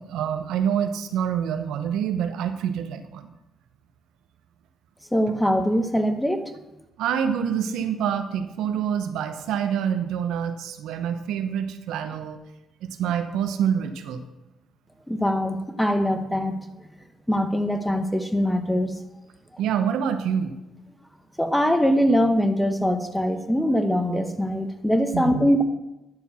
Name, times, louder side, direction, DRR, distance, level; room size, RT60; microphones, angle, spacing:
voice 1, 0.0-3.3 7.0-12.4 12.8-14.2 19.6-20.5 25.1-25.5, right 8 dB, 90° right, 8 dB, 0.8 m, -26 dB
voice 2, 5.1-6.5 15.1-16.6 17.3-18.9 21.4-25.6, equal, 5° left, 7 dB, 1.1 m, -22 dB
10.5 x 4.6 x 6.9 m, 0.98 s
cardioid pair, 90°, 0 cm